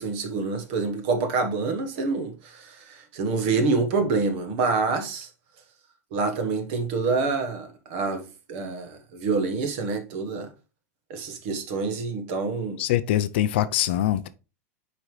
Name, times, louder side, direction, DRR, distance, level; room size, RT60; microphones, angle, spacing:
voice 1, 0.0-5.3 6.1-10.5 11.1-12.8, right 4 dB, 40° right, 1.3 m, -27 dB
voice 2, 12.8-14.3, left 12 dB, 45° left, 0.4 m, -23 dB
8.5 x 5.1 x 3.2 m
supercardioid pair, 180°, 8 cm